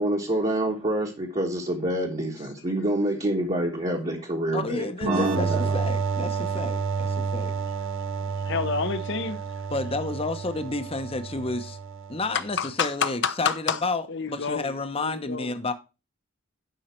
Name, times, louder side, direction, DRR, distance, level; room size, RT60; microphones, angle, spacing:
voice 1, 0.0-5.8, right 1 dB, 30° right, 1.4 m, -27 dB
voice 2, 4.5-7.5 9.7-11.8 12.1-14.0 14.3-15.7, left 2 dB, 25° left, 0.9 m, -30 dB
sound 1, 5.0-12.5, right 5 dB, 65° right, 0.8 m, -30 dB
voice 3, 8.2-9.4 12.3-13.8 14.1-15.5, left 5 dB, 55° left, 1.0 m, -29 dB
11.0 x 5.6 x 4.5 m
head